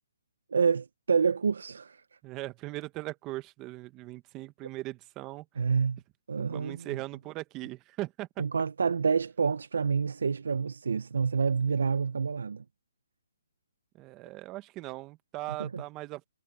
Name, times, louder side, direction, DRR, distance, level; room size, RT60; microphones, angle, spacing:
voice 1, 0.5-2.0 5.6-6.0 6.3-7.0 8.4-12.6 15.6-15.8, right 5 dB, 75° right, 0.6 m, -28 dB
voice 2, 2.2-5.5 6.4-8.4 13.9-16.2, right 18 dB, 20° right, 1.3 m, -39 dB
hypercardioid pair, 160°, 0 cm